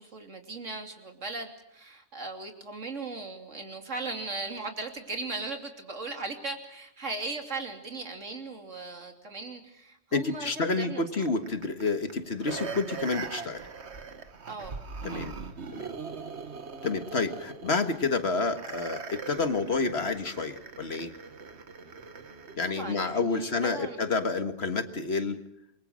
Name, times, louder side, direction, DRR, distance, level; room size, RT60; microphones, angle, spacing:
voice 1, 0.0-11.0 14.5-15.3 22.6-24.0, right 3 dB, 80° right, 4 dB, 3.3 m, -38 dB
voice 2, 10.1-13.6 15.0-15.3 15.7-15.9 16.8-21.1 22.6-25.4, left 3 dB, 55° left, 8 dB, 1.9 m, -29 dB
sound 1, 11.1-22.6 23.0-23.1, right 5 dB, 60° right, 1.6 m, -41 dB
28.5 x 23.0 x 6.4 m, 0.81 s
omnidirectional pair, 1.3 m